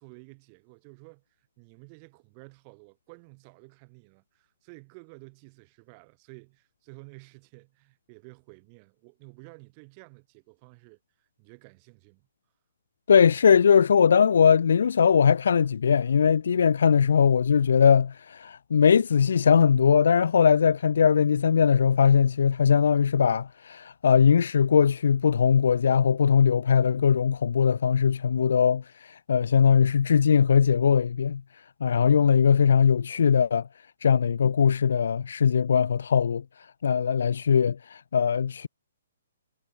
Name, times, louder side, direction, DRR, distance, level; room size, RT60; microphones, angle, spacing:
voice 1, 0.0-12.3, right 34 dB, 20° right, 2.1 m, -51 dB
voice 2, 13.1-33.7 34.0-38.7, left 7 dB, 60° left, 0.3 m, -21 dB
hypercardioid pair, 175°, 0 cm